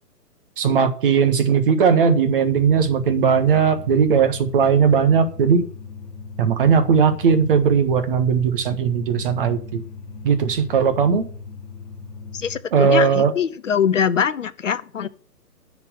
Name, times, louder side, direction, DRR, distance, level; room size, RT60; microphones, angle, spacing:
voice 1, 0.6-5.7 6.4-9.8 10.2-11.3 12.7-13.3, right 6 dB, 35° right, 1.5 m, -18 dB
sound 1, 2.5-12.6, left 4 dB, 20° left, 4.6 m, -38 dB
voice 2, 12.3-15.1, left 7 dB, 50° left, 0.9 m, -23 dB
10.0 x 6.1 x 8.1 m
figure-of-eight pair, 140°, 49 cm